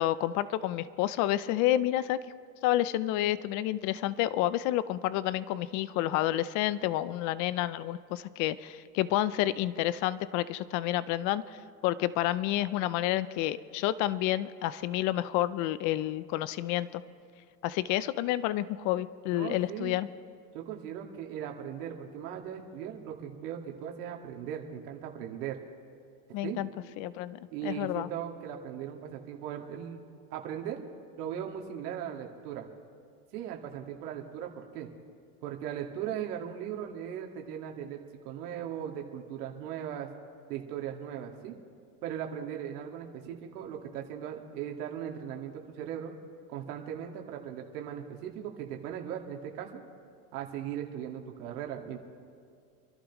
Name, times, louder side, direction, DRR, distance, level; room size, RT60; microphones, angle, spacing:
voice 1, 0.0-2.2 2.6-11.6 11.8-17.0 17.6-20.1 26.3-26.7 27.0-28.1, left 14 dB, 40° left, 16 dB, 0.5 m, -29 dB
voice 2, 19.3-20.0 20.5-25.6 26.4-26.6 27.5-30.8 31.2-32.6 33.3-34.9 35.4-40.1 40.5-41.5 42.0-46.1 46.5-49.9 50.3-52.0, right 9 dB, 70° right, 1 dB, 2.0 m, -38 dB
27.5 x 11.5 x 3.1 m, 2.3 s
supercardioid pair, 130°, 47 cm